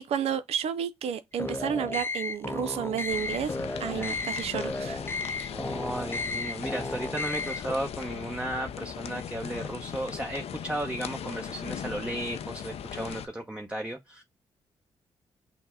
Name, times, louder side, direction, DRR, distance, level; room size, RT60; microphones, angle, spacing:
voice 1, 0.0-5.0, right 8 dB, 65° right, 0.4 m, -31 dB
sound 1, 1.3-7.7, left 2 dB, 20° left, 0.6 m, -34 dB
sound 2, 3.1-13.3, left 8 dB, 65° left, 0.5 m, -39 dB
voice 2, 3.9-4.2 5.5-14.2, right 1 dB, 10° right, 0.8 m, -35 dB
5.8 x 2.1 x 3.6 m
hypercardioid pair, 45°, 11 cm